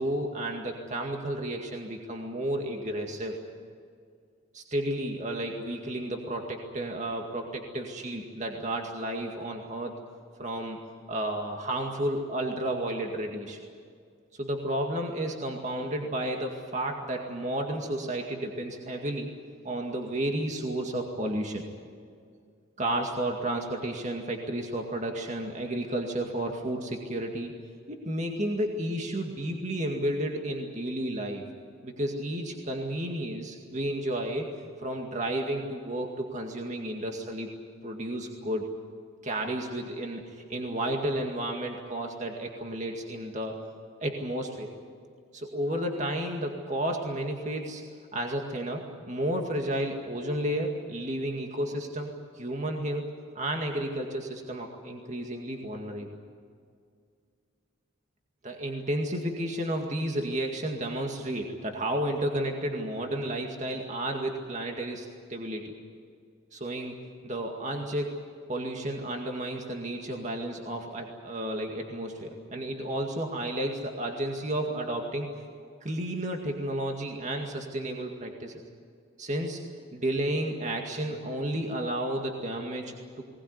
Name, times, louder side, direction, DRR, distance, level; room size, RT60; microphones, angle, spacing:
voice 1, 0.0-3.4 4.5-9.9 10.4-10.8 11.1-13.6 14.3-19.3 19.6-21.6 22.8-27.5 27.9-31.5 31.8-34.5 34.8-37.5 37.8-38.8 39.2-43.5 44.0-44.7 45.3-47.8 48.1-52.1 52.3-53.1 53.4-56.1 58.4-65.7 66.5-67.0 67.2-75.3 75.8-78.6 79.2-79.6 79.9-83.2, right 1 dB, 35° right, 2 dB, 2.1 m, -32 dB
21.5 x 19.0 x 9.7 m, 2.2 s
head